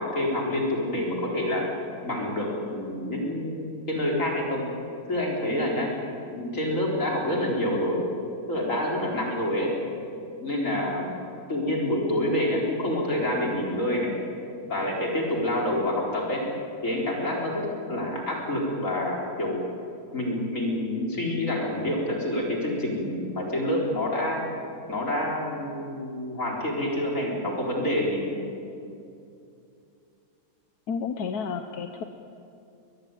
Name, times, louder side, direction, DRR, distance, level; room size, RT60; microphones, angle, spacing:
voice 1, 0.0-1.6 2.0-4.7 5.1-5.9 6.3-8.0 8.5-9.7 10.4-11.1 11.5-14.1 14.7-16.4 16.8-19.6 20.1-24.4 24.9-28.2, left 1 dB, 35° left, -2 dB, 4.6 m, -27 dB
voice 2, 30.9-32.0, left 6 dB, 55° left, 6 dB, 1.3 m, -31 dB
22.0 x 21.0 x 9.1 m, 2.6 s
omnidirectional pair, 2.3 m